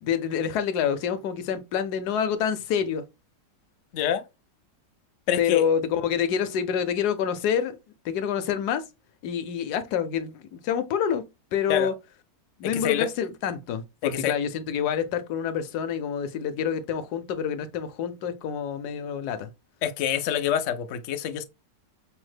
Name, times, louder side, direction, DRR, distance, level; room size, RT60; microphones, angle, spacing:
voice 1, 0.0-3.0 5.4-7.8 8.0-8.8 9.2-11.2 11.5-11.9 12.6-19.5, left 8 dB, 70° left, 1.1 m, -27 dB
voice 2, 5.3-5.7 11.7-11.9 12.6-13.1 14.0-14.4 19.8-21.4, left 9 dB, 85° left, 0.6 m, -26 dB
5.3 x 2.1 x 3.2 m
omnidirectional pair, 1.9 m